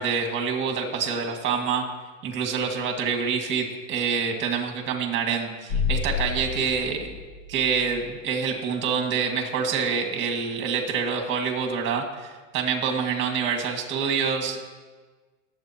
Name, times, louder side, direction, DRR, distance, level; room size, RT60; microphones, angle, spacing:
voice 1, 0.0-1.9 2.2-7.2 7.5-14.7, right 6 dB, 30° right, 2 dB, 2.0 m, -26 dB
sound 1, 5.7-8.1, left 5 dB, 80° left, 1.8 m, -30 dB
22.0 x 7.9 x 2.9 m, 1.4 s
supercardioid pair, 150°, 41 cm